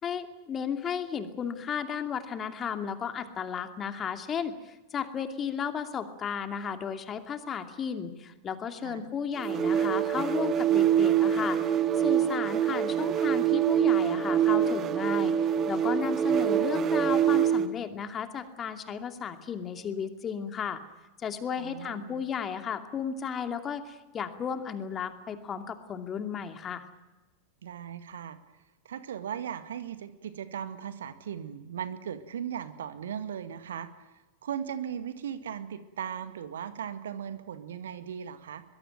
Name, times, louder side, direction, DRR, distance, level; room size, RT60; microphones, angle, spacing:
voice 1, 0.0-20.8 21.2-26.9, left 7 dB, 25° left, 7 dB, 2.5 m, -34 dB
sound 1, 9.4-17.8, right 9 dB, 30° right, 1.0 m, -25 dB
voice 2, 21.6-22.2 27.6-28.4 28.9-34.1 34.4-38.6, right 8 dB, 65° right, 11 dB, 1.9 m, -38 dB
23.5 x 21.5 x 9.1 m, 1.1 s
figure-of-eight pair, 90°, 0 cm